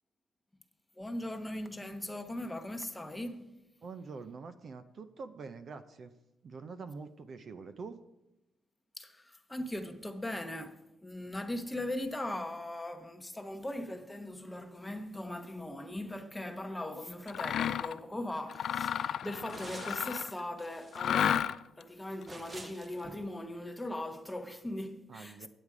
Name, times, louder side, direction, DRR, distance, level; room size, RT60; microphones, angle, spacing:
voice 1, 1.0-3.6 9.0-25.5, left 1 dB, 10° left, 0.9 m, -39 dB
voice 2, 3.8-6.1 6.4-8.0 25.1-25.5, right 4 dB, 50° right, 0.6 m, -45 dB
Mechanisms, 17.3-18.0 18.5-20.4 20.9-21.8, left 9 dB, 65° left, 0.3 m, -32 dB
sound 1, 17.9-18.0 18.4-18.5 19.5-20.2 20.4-21.2 22.3-23.3, right 2 dB, 25° right, 0.8 m, -48 dB
9.0 x 8.2 x 4.9 m
cardioid pair, 90°, 0 cm